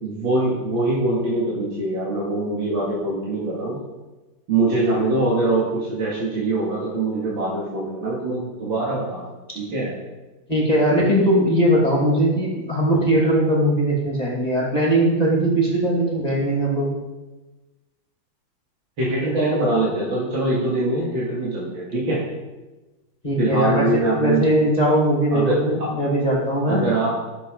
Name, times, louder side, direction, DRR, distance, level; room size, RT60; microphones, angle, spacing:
voice 1, 0.0-3.8 4.5-9.2 9.5-9.9 19.0-22.2 23.4-24.5 25.3-25.9 26.7-27.1, right 2 dB, 65° right, -6 dB, 3.0 m, -23 dB
voice 2, 10.5-17.0 23.2-26.8, right 1 dB, 20° left, -4 dB, 2.4 m, -20 dB
12.5 x 7.4 x 5.4 m, 1.1 s
omnidirectional pair, 2.3 m